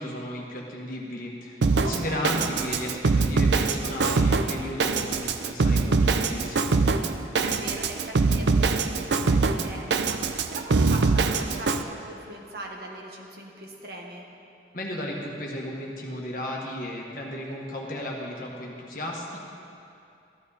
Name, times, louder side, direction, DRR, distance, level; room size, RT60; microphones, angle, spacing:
voice 1, 0.0-6.7 14.7-19.4, left 1 dB, 50° left, -1 dB, 1.5 m, -34 dB
Drum kit, 1.6-11.8, right 4 dB, 75° right, 0.5 m, -23 dB
voice 2, 1.8-2.3 7.4-14.2, right 1 dB, 55° right, 0 dB, 1.4 m, -40 dB
13.5 x 11.5 x 4.1 m, 2.6 s
head